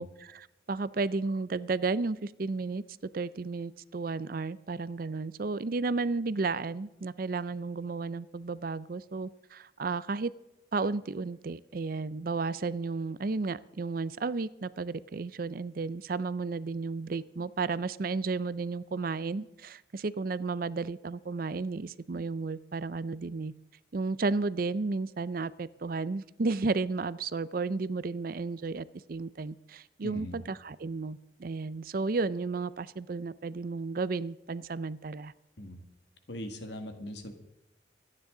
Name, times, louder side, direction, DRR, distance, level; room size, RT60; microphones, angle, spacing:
voice 1, 0.0-2.8 3.1-10.3 10.7-23.5 23.9-35.3, right 3 dB, 50° right, 17 dB, 0.5 m, -33 dB
voice 2, 30.0-30.4 35.6-35.8 36.3-37.3, left 1 dB, 65° left, 6 dB, 2.0 m, -40 dB
25.5 x 9.8 x 3.8 m, 0.93 s
head